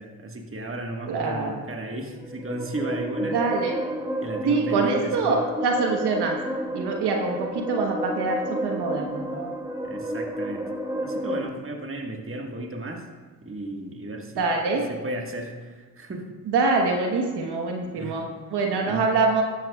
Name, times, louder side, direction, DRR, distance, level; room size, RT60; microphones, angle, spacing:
voice 1, 0.0-3.4 4.2-5.4 9.8-10.7 11.0-13.1 13.4-16.3 17.9-18.3 18.8-19.1, right 1 dB, 30° right, 2 dB, 1.7 m, -34 dB
voice 2, 1.1-1.5 3.3-3.8 4.4-6.4 6.7-9.5 14.4-14.8 16.5-19.4, right 4 dB, 75° right, 1 dB, 1.3 m, -25 dB
sound 1, 2.1-11.5, right 1 dB, 10° right, 1.6 m, -31 dB
14.0 x 10.0 x 2.4 m, 1.5 s
supercardioid pair, 45°, 41 cm